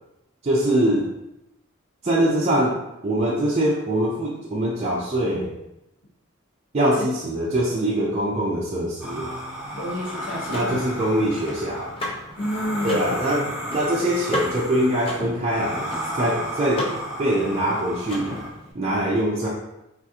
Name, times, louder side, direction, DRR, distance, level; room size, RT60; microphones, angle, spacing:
voice 1, 0.4-1.1 2.0-5.5 6.7-9.3 10.5-11.9 12.8-15.9 16.1-16.9 17.2-18.4 18.7-19.5, right 1 dB, 30° right, -6 dB, 0.4 m, -23 dB
sound 1, 9.0-18.5, equal, 5° right, 0.8 m, -33 dB
voice 2, 9.7-10.8 12.4-13.1, left 1 dB, 60° left, -4 dB, 0.9 m, -30 dB
Car / Mechanisms, 9.8-18.7, left 1 dB, 25° left, 0.6 m, -35 dB
3.5 x 2.4 x 2.7 m, 0.90 s
head